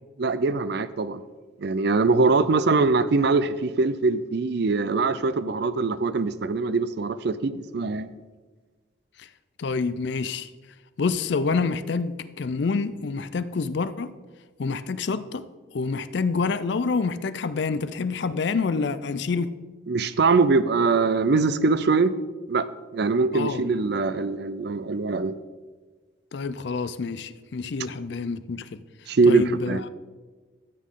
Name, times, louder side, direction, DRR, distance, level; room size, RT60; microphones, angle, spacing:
voice 1, 0.2-1.2 1.6-8.1 19.9-22.1 22.5-22.7 22.9-25.3 29.1-29.8, right 4 dB, 55° right, 0.5 m, -22 dB
voice 2, 9.6-10.5 11.0-14.1 14.6-15.4 15.7-19.5 23.3-23.7 26.3-28.8 29.2-29.9, left 4 dB, 60° left, 0.4 m, -27 dB
13.0 x 8.5 x 3.8 m
head